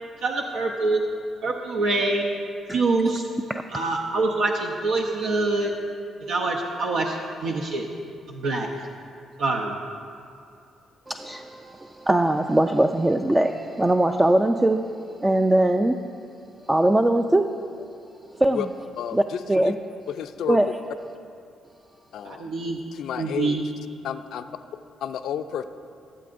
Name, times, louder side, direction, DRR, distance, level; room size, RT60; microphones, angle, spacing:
voice 1, 0.2-1.0 1.4-2.2 2.7-3.3 3.7-5.7 6.2-7.9 8.3-8.7 9.4-9.8 22.2-22.8 23.1-23.7, right 3 dB, 80° right, 0 dB, 0.6 m, -25 dB
voice 2, 11.1-16.0 16.7-17.5 18.3-18.7 19.1-19.8 20.5-20.8 21.0-21.1, right 1 dB, 15° right, 5 dB, 0.3 m, -21 dB
voice 3, 20.1-20.6 22.1-22.5 23.0-23.6 24.0-24.4 25.0-25.6, left 9 dB, 75° left, 9 dB, 0.4 m, -30 dB
15.5 x 7.7 x 2.5 m, 2.5 s
cardioid pair, 90°, 0 cm